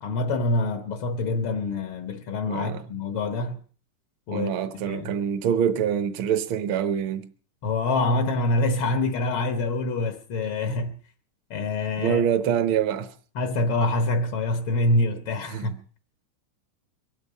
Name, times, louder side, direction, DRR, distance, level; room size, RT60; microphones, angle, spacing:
voice 1, 0.0-3.6 4.3-5.2 7.6-11.0 11.5-12.2 13.3-15.8, left 2 dB, 70° left, 1.2 m, -26 dB
voice 2, 2.5-2.8 4.3-7.3 12.0-13.1 15.5-15.8, right 8 dB, 65° right, 1.3 m, -25 dB
23.5 x 8.7 x 5.5 m
omnidirectional pair, 3.7 m